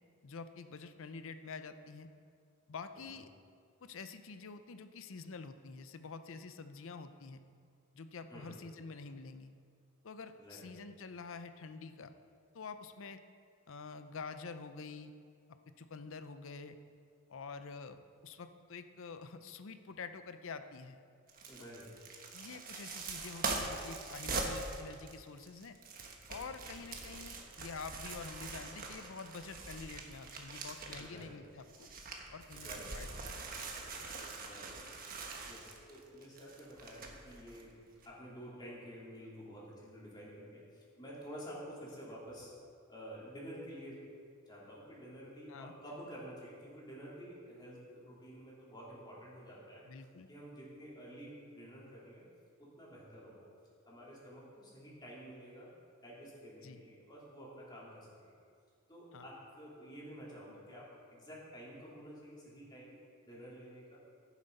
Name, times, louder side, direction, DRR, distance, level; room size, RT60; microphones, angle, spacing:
voice 1, 0.2-2.1 2.7-3.3 3.8-7.4 7.9-9.5 10.0-12.1 12.5-13.2 13.7-15.1 15.8-16.8 17.3-21.0 22.3-25.8 26.3-31.9 32.3-32.7 32.9-33.4 34.0-34.1 45.5-45.7 49.9-50.3 56.6-56.8 59.1-59.3, left 4 dB, 65° left, 10 dB, 0.6 m, -47 dB
sound 1, 21.3-31.2 31.6-37.6 38.0-38.1, right 3 dB, 45° right, 1.2 m, -43 dB
voice 2, 21.5-21.9 26.6-26.7 30.9-31.4 32.5-32.9 34.4-34.7 35.5-42.5 42.9-44.1 44.5-49.9 50.3-52.2 52.6-53.5 53.9-55.7 56.0-58.3 58.9-63.0 63.3-64.0, equal, 20° left, -7 dB, 3.2 m, -50 dB
13.0 x 7.3 x 5.3 m, 2.2 s
head